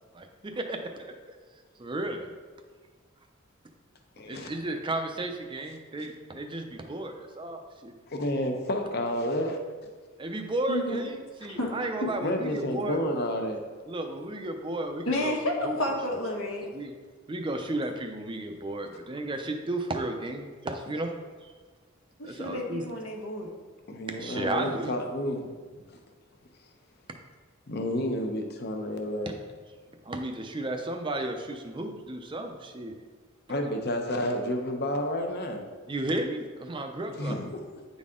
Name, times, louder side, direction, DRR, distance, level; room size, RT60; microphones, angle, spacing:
voice 1, 0.6-1.1 1.8-2.3 4.3-7.9 10.2-13.0 13.9-15.4 15.6-15.8 16.7-16.9 17.3-21.1 21.4-21.5 22.2-22.8 24.1-24.9 30.0-32.9 35.9-37.4, right 2 dB, 25° right, 5 dB, 0.5 m, -33 dB
voice 2, 4.2-4.5 8.1-9.6 12.2-13.6 23.9-25.5 27.7-29.4 33.5-35.6 37.2-37.6, left 1 dB, 50° left, 4 dB, 0.8 m, -30 dB
voice 3, 15.0-16.7 22.2-23.5, left 1 dB, 80° left, -1 dB, 1.3 m, -30 dB
9.3 x 4.1 x 3.7 m, 1.5 s
head